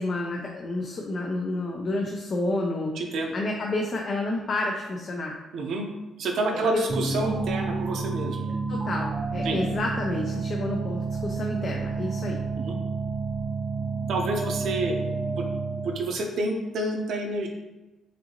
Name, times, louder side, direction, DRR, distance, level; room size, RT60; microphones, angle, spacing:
voice 1, 0.0-2.9 3.3-5.4 6.5-6.8 8.7-12.4, left 2 dB, 45° left, 0 dB, 0.5 m, -30 dB
voice 2, 3.0-3.3 5.5-5.9 6.2-8.4 9.4-9.6 12.6-12.8 14.1-14.9 15.3-15.5 15.8-17.5, right 2 dB, 70° right, 2 dB, 0.7 m, -28 dB
sound 1, 6.9-16.1, right 4 dB, 35° right, 0.6 m, -30 dB
5.2 x 2.8 x 2.9 m, 1.1 s
cardioid pair, 90°, 0 cm